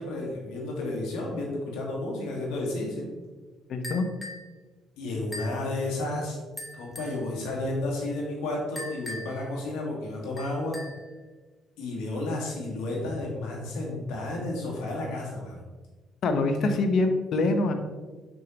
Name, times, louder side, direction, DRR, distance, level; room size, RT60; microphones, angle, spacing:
voice 1, 0.0-3.1 5.0-6.4 6.7-10.8 11.8-15.6, left 2 dB, 85° left, -1 dB, 1.8 m, -32 dB
voice 2, 3.7-4.1 16.2-17.7, left 2 dB, 65° left, 7 dB, 0.8 m, -24 dB
sound 1, 3.8-4.5 5.3-5.6 6.6-7.2 8.8-9.5 10.4-11.1, left 1 dB, 15° left, 1.5 m, -40 dB
6.4 x 6.3 x 3.0 m, 1.3 s
supercardioid pair, 70°, 0 cm